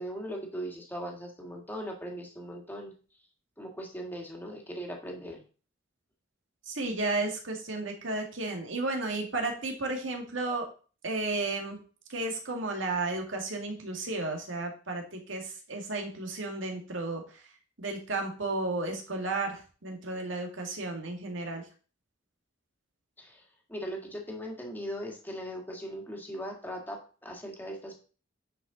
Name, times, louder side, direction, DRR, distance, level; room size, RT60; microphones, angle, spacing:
voice 1, 0.0-2.9 3.6-5.4 23.2-23.4 23.7-28.0, equal, 10° left, 0 dB, 1.8 m, -39 dB
voice 2, 6.7-10.7 11.0-11.8 12.1-17.4 17.8-21.6, right 2 dB, 75° right, 2 dB, 1.9 m, -33 dB
9.5 x 5.2 x 3.9 m, 0.38 s
head